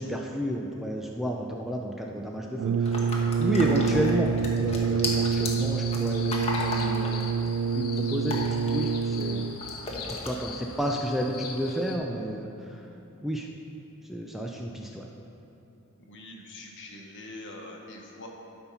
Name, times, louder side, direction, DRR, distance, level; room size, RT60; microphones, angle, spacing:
voice 1, 0.0-9.5 10.2-12.8 13.2-13.5 14.0-15.1, equal, ahead, 0 dB, 0.4 m, -31 dB
Brass instrument, 2.6-9.7, right 5 dB, 85° right, 0.3 m, -27 dB
sound 1, 2.9-9.3 9.6-10.3, left 2 dB, 30° left, 1.1 m, -35 dB
sound 2, 5.3-12.0, left 5 dB, 75° left, 1.0 m, -42 dB
voice 2, 16.1-18.3, left 2 dB, 55° left, 0 dB, 1.2 m, -43 dB
12.5 x 4.4 x 5.6 m, 2.8 s
head